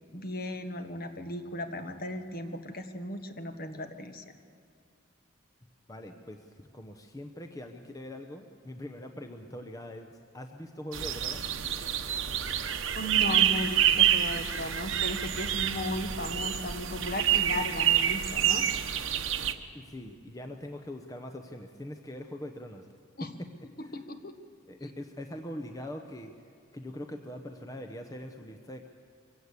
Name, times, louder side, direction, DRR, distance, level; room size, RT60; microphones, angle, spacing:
voice 1, 0.1-4.2 12.9-18.7 23.2-23.3 23.8-24.4, equal, 45° left, 7 dB, 1.5 m, -36 dB
voice 2, 5.9-11.5 19.7-22.9 23.8-24.0 24.7-28.9, left 1 dB, 15° left, 4 dB, 0.8 m, -42 dB
sound 1, 10.9-19.5, right 10 dB, 70° right, 1.1 m, -27 dB
23.5 x 16.5 x 8.3 m, 2.1 s
head